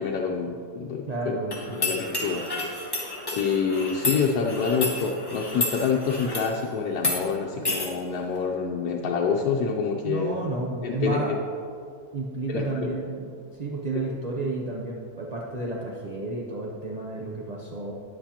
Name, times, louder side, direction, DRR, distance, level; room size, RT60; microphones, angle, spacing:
voice 1, 0.0-1.4 1.8-2.9 3.3-10.3 10.8-11.4 12.5-13.0 13.9-14.0, left 5 dB, 90° left, -1 dB, 1.2 m, -27 dB
voice 2, 1.1-2.0 10.0-11.4 12.1-17.9, right 2 dB, 55° right, -2 dB, 0.4 m, -31 dB
sound 1, 1.5-6.5 7.0-7.2 7.7-7.9, left 2 dB, 15° left, 1.2 m, -30 dB
9.7 x 8.0 x 2.8 m, 2.3 s
omnidirectional pair, 1.6 m